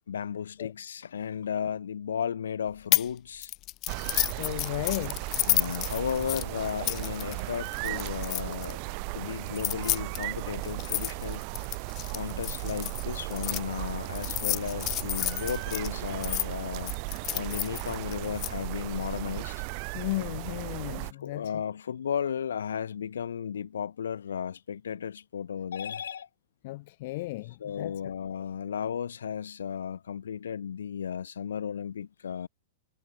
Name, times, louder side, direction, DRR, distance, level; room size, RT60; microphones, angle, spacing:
voice 1, 0.1-3.5 5.5-8.8 9.1-11.4 12.1-16.9 17.3-19.6 21.2-26.3 27.6-32.5, left 8 dB, 85° left, 2.6 m, -34 dB
sound 1, 2.9-3.1 3.4-8.7 9.5-13.6 14.2-16.5 16.9-18.5, left 18 dB, 40° left, 0.4 m, -31 dB
sound 2, 3.9-21.1, right 40 dB or more, 45° right, 5.0 m, -36 dB
voice 2, 4.4-5.3 19.9-21.6 26.6-28.0 28.3-28.4, left 19 dB, 55° left, 1.3 m, -35 dB
hypercardioid pair, 125°, 0 cm